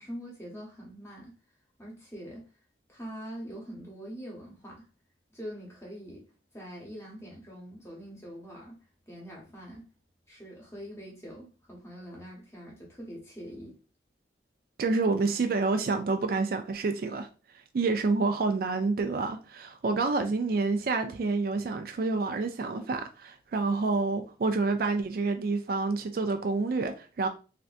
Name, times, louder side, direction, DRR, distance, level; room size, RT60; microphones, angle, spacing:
voice 1, 0.0-1.3 1.8-2.5 2.9-4.9 5.3-6.3 6.5-8.8 9.1-9.9 10.3-13.8, equal, 15° left, 0.9 m, -43 dB
voice 2, 14.8-17.3 17.7-27.3, right 3 dB, 50° right, 0.3 m, -28 dB
3.3 x 2.6 x 2.5 m
head